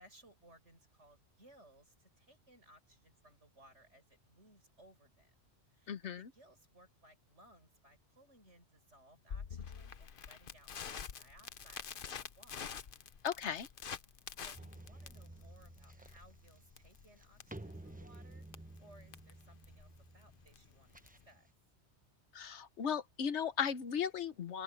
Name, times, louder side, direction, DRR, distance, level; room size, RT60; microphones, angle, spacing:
voice 1, 0.0-5.3 5.7-12.7 14.4-21.5, right 1 dB, 75° right, 7.4 m, -63 dB
voice 2, 5.9-6.2 13.2-13.7 22.3-24.6, left 8 dB, 70° left, 1.2 m, -36 dB
Crackle, 9.3-21.3, left 7 dB, 50° left, 1.0 m, -48 dB
sound 1, 14.5-21.5, right 1 dB, 10° right, 0.8 m, -53 dB
open air
omnidirectional pair, 1.2 m